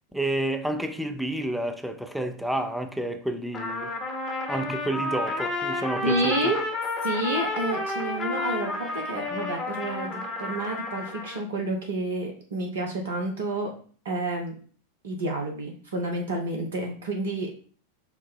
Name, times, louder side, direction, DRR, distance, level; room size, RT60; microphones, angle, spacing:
voice 1, 0.1-3.9 4.5-6.6, right 1 dB, ahead, 0.5 m, -30 dB
Trumpet, 3.5-11.4, left 3 dB, 25° left, 0.9 m, -31 dB
voice 2, 6.0-6.6 7.0-13.7 14.0-14.5 15.0-17.5, right 2 dB, 60° right, 0.8 m, -29 dB
5.9 x 2.1 x 3.7 m
figure-of-eight pair, 90°, 0 cm